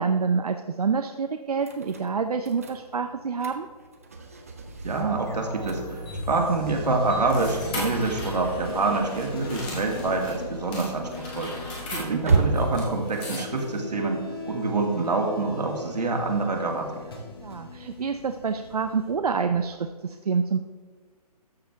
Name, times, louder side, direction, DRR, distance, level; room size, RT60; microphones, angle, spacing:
voice 1, 0.0-3.7 11.9-12.2 17.4-20.6, right 5 dB, 70° right, 6 dB, 0.6 m, -27 dB
sound 1, 1.6-19.6, right 4 dB, 20° right, 0.6 m, -35 dB
voice 2, 4.8-11.5 12.0-16.9, right 3 dB, 85° right, 1 dB, 2.3 m, -26 dB
sound 2, 5.2-19.1, left 3 dB, 35° left, 1.7 m, -39 dB
cash register, 5.6-10.3 10.7-13.8, left 1 dB, 15° left, 1.2 m, -39 dB
13.0 x 6.7 x 3.5 m, 1.5 s
hypercardioid pair, 175°, 21 cm